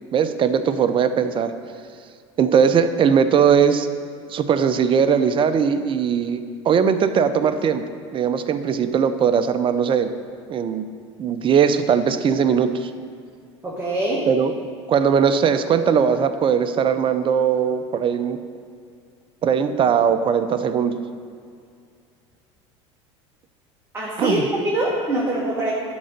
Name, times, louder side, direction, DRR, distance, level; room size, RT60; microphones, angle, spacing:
voice 1, 0.1-1.5 2.4-3.9 4.3-10.1 10.5-10.9 11.2-12.9 14.3-14.5 14.9-18.4 19.4-21.0 24.2-24.5, right 7 dB, 35° right, 11 dB, 0.6 m, -19 dB
voice 2, 13.6-14.2 23.9-25.7, right 1 dB, 15° right, -6 dB, 1.7 m, -23 dB
11.0 x 3.8 x 6.5 m, 2.2 s
hypercardioid pair, 90°, 16 cm